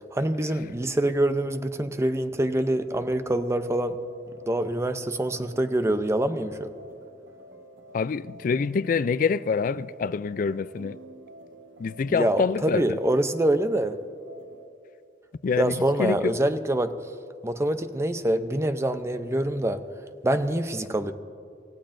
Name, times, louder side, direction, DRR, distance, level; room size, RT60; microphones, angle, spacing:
voice 1, 0.1-4.0 4.4-6.7 12.1-14.0 15.6-17.0 17.4-19.8 20.2-21.1, right 1 dB, 15° right, 0.5 m, -25 dB
sound 1, 2.8-14.7, right 1 dB, 90° right, 1.3 m, -49 dB
voice 2, 7.9-11.0 11.8-13.0 15.4-16.4, left 5 dB, 45° left, 0.3 m, -26 dB
27.5 x 15.0 x 2.6 m
head